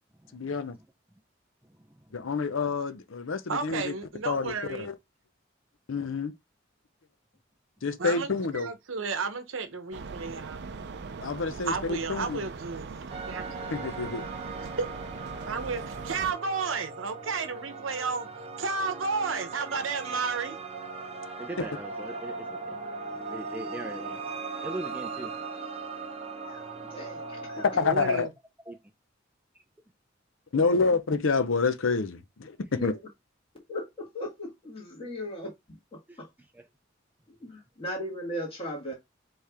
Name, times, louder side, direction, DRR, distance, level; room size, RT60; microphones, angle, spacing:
voice 1, 0.3-0.8 2.1-3.9 4.2-4.9 5.9-6.3 7.8-8.7 11.2-12.4 13.7-14.2 27.6-28.3 30.5-32.9, left 4 dB, 75° left, 0.7 m, -28 dB
voice 2, 1.6-2.3 21.4-25.4 27.6-27.7 28.7-28.8 35.0-35.1 36.1-36.7, right 1 dB, 10° right, 0.4 m, -42 dB
voice 3, 3.5-4.9 8.0-8.3 8.5-10.6 11.7-12.9 13.3-13.4 14.8-14.9 15.4-18.3 18.6-20.6 27.8-28.3, right 4 dB, 80° right, 0.9 m, -32 dB
sound 1, 9.9-16.3, right 4 dB, 60° right, 0.5 m, -40 dB
sound 2, 13.1-28.2, right 4 dB, 30° right, 0.8 m, -39 dB
voice 4, 26.3-27.6 30.5-30.8 32.7-33.0 33.7-36.3 37.4-38.9, left 1 dB, 30° left, 1.7 m, -38 dB
4.6 x 3.3 x 3.5 m
head